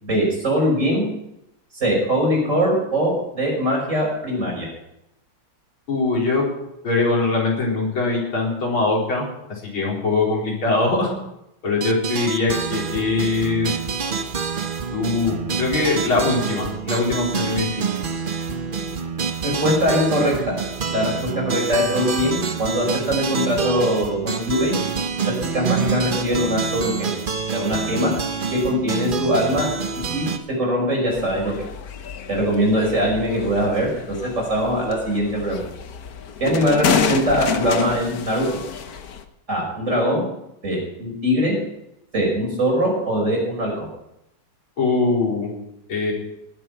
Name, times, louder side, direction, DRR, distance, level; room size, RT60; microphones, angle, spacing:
voice 1, 0.0-1.1 1.8-4.7 19.4-20.6 20.9-24.7 25.2-27.1 27.5-28.1 28.5-29.7 30.1-30.3 30.6-31.5 32.3-34.2 34.5-35.6 36.4-38.5 39.5-40.2 40.6-41.6 42.1-43.9, equal, 35° right, -2 dB, 6.0 m, -21 dB
voice 2, 5.9-6.4 6.8-9.3 9.6-11.1 11.6-13.7 14.9-17.7 44.8-45.5 45.9-46.1, left 3 dB, 70° left, -3 dB, 5.0 m, -22 dB
sound 1, 11.8-30.4, right 5 dB, 80° right, 0.4 m, -27 dB
sound 2, 31.1-39.2, left 7 dB, 55° left, 1.2 m, -29 dB
19.5 x 7.9 x 6.0 m, 0.83 s
omnidirectional pair, 2.3 m